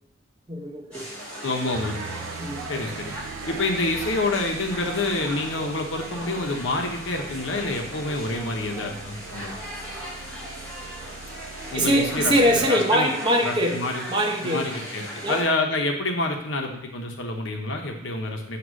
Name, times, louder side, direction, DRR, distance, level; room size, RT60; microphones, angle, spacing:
voice 1, 0.5-1.1 2.4-2.7 11.7-13.8 14.1-14.7 15.2-15.4, equal, 25° right, -1 dB, 0.8 m, -22 dB
sound 1, 0.9-15.4, equal, 5° left, 2.6 m, -38 dB
voice 2, 1.4-2.2 2.7-3.1 3.5-9.6 11.7-13.1 13.4-14.0 14.4-18.6, left 2 dB, 80° left, 2 dB, 1.0 m, -27 dB
sound 2, 1.7-12.7, right 6 dB, 90° right, 0.3 m, -42 dB
7.8 x 3.0 x 6.2 m, 0.74 s
head